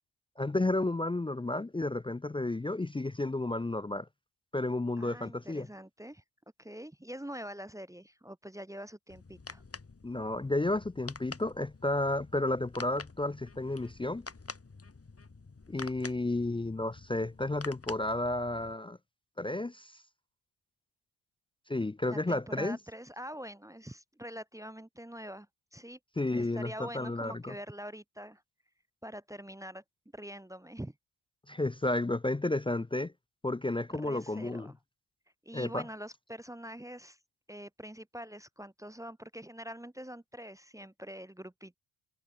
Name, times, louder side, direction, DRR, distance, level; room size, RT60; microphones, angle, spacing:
voice 1, 0.4-4.1 4.5-5.7 10.0-14.2 15.7-19.0 19.4-19.9 21.7-22.8 26.2-27.5 31.5-33.1 33.4-34.7 35.5-35.8, left 2 dB, 10° left, 0.6 m, -32 dB
voice 2, 5.0-6.2 6.6-9.6 22.1-25.5 25.7-26.0 26.3-28.4 29.0-29.8 30.1-30.9 33.9-34.7 35.4-37.2 37.5-41.8, equal, 5° right, 1.2 m, -44 dB
sound 1, 9.1-18.7, left 4 dB, 30° left, 5.3 m, -48 dB
supercardioid pair, 60°, 49 cm